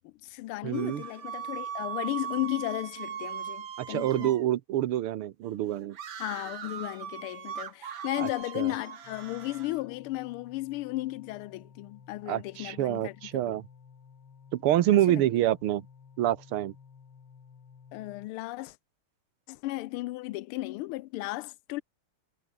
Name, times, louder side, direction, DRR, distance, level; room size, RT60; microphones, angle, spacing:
voice 1, 0.0-4.3 6.2-13.4 15.1-15.2 17.9-18.8 19.5-21.8, left 18 dB, 85° left, 1.5 m, -35 dB
voice 2, 0.6-1.0 3.8-6.0 8.2-8.3 8.6-8.7 12.3-13.7 14.5-15.8 16.2-16.7, right 13 dB, 85° right, 1.8 m, -27 dB
sound 1, 0.7-4.5 5.9-9.8, right 8 dB, 65° right, 2.3 m, -39 dB
sound 2, 9.0-18.3, left 6 dB, 70° left, 3.2 m, -54 dB
omnidirectional pair, 2.3 m